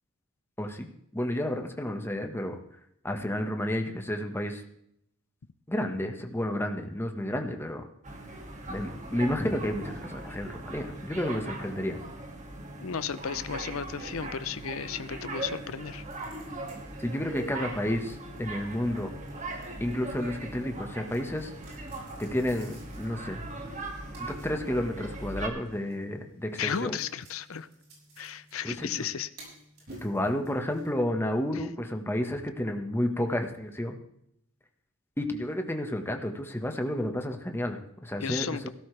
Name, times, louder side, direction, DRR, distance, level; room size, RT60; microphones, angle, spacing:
voice 1, 0.6-2.6 3.0-4.6 5.7-7.8 8.7-12.0 17.0-19.1 19.8-21.5 22.2-23.4 24.2-27.0 28.6-28.9 30.0-34.0 35.2-38.5, left 1 dB, 10° left, 4 dB, 1.5 m, -31 dB
sound 1, 8.0-25.5, right 2 dB, 35° right, 2.3 m, -40 dB
voice 2, 12.8-16.0 26.6-27.7 28.2-29.3 31.5-31.7 38.2-38.7, left 7 dB, 85° left, 14 dB, 0.7 m, -34 dB
sound 2, 16.1-30.9, right 1 dB, 55° right, 6.6 m, -54 dB
16.5 x 13.5 x 3.4 m, 0.73 s
head